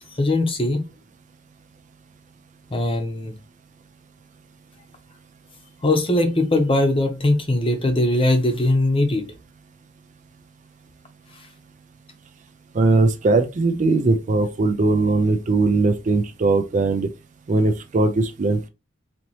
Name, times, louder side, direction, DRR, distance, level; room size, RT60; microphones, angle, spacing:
voice 1, 0.2-0.8 2.7-3.3 5.8-9.3, left 1 dB, 25° left, 0.8 m, -20 dB
voice 2, 12.7-17.1 17.5-18.7, right 3 dB, 35° right, 0.4 m, -20 dB
4.1 x 2.9 x 3.0 m
head